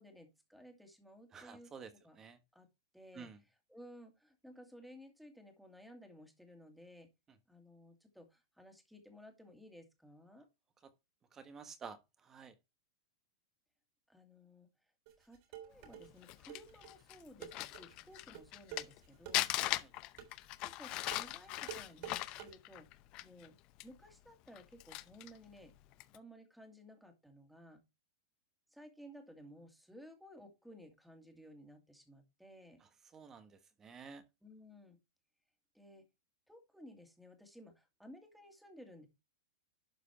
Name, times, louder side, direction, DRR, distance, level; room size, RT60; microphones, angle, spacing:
voice 1, 0.0-2.2 2.5-2.7 2.9-3.4 3.7-7.1 7.5-10.5 14.1-14.9 15.2-19.5 20.6-22.9 23.2-23.6 23.8-25.7 26.1-27.8 28.7-32.8 34.4-35.0 35.7-36.1 36.5-39.1, equal, ahead, 2.3 m, -57 dB
voice 2, 1.3-1.9 2.2-2.4 3.1-3.4 11.3-12.5 19.8-19.9 33.1-34.2, right 6 dB, 20° right, 1.4 m, -51 dB
sound 1, 15.1-22.5, right 10 dB, 45° right, 3.5 m, -49 dB
Crumpling crinkling, 16.0-19.0 19.3-23.5 23.8-23.9 24.5-25.4 25.9-26.2, left 17 dB, 35° left, 0.7 m, -39 dB
12.0 x 5.0 x 4.4 m
supercardioid pair, 150°, 2 cm